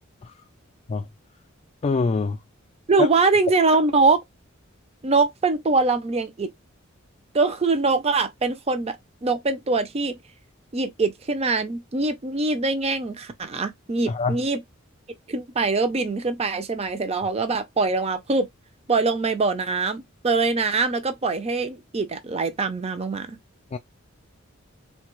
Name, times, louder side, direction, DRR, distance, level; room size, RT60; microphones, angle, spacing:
voice 1, 1.8-2.4 3.0-3.1 14.1-14.4 23.7-23.8, left 4 dB, 30° left, 0.3 m, -24 dB
voice 2, 2.9-4.2 5.0-6.5 7.3-9.0 9.2-10.2 10.7-14.6 15.3-18.5 18.9-23.4, right 3 dB, 30° right, 0.5 m, -23 dB
3.2 x 2.3 x 3.0 m
head